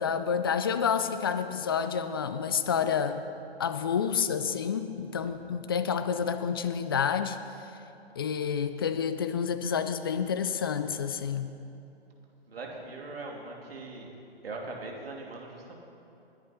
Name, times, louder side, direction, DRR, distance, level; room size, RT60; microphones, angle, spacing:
voice 1, 0.0-3.2 3.6-7.4 8.2-11.5, left 7 dB, 25° left, 10 dB, 0.4 m, -29 dB
voice 2, 12.5-14.1 14.4-15.7, right 3 dB, 65° right, -1 dB, 3.0 m, -41 dB
20.5 x 10.5 x 4.3 m, 2.8 s
figure-of-eight pair, 130°, 32 cm